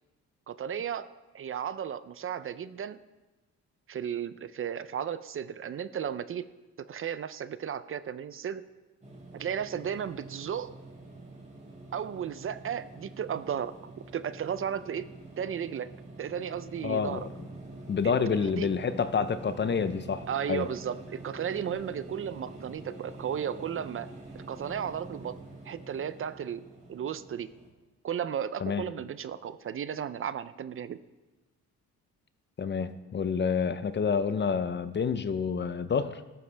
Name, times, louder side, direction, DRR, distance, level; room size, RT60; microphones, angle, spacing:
voice 1, 0.5-1.1 1.3-3.0 3.9-6.4 6.8-8.6 9.3-10.7 11.9-13.7 14.1-15.1 15.4-15.9 16.2-17.3 18.4-18.7 20.3-24.1 24.3-25.4 25.7-26.6 26.9-27.5 28.0-31.0, right 8 dB, 45° right, 14 dB, 0.6 m, -34 dB
sound 1, 9.0-27.7, right 2 dB, 25° right, 4.1 m, -46 dB
voice 2, 16.8-17.3 17.9-20.7 28.6-28.8 32.6-36.2, left 6 dB, 35° left, 12 dB, 0.7 m, -28 dB
13.5 x 12.5 x 3.4 m, 1.1 s
cardioid pair, 90°, 30 cm